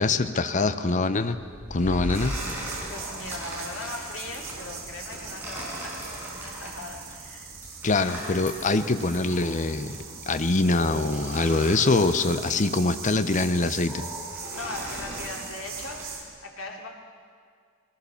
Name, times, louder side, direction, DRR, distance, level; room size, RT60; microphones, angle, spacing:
voice 1, 0.0-1.4 1.7-2.3 7.8-10.0 10.3-14.0, left 3 dB, 40° left, 10 dB, 0.7 m, -24 dB
sound 1, 1.3-16.1, equal, 10° right, 5.4 m, -39 dB
sound 2, 2.1-16.2, right 6 dB, 85° right, 3.8 m, -41 dB
voice 2, 2.9-7.5 14.5-16.1 16.4-16.9, left 2 dB, 85° left, 1 dB, 2.8 m, -39 dB
21.5 x 17.5 x 7.0 m, 2.1 s
head